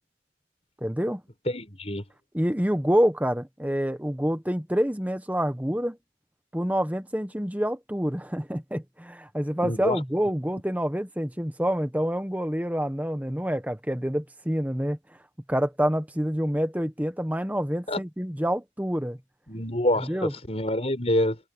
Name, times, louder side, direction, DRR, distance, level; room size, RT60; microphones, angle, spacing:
voice 1, 0.8-1.2 2.3-6.0 6.5-15.0 15.5-19.2 20.0-20.3, equal, 10° right, 1.3 m, -27 dB
voice 2, 1.5-2.0 9.6-10.0 17.9-18.0 19.5-21.4, left 1 dB, 35° left, 6.2 m, -26 dB
head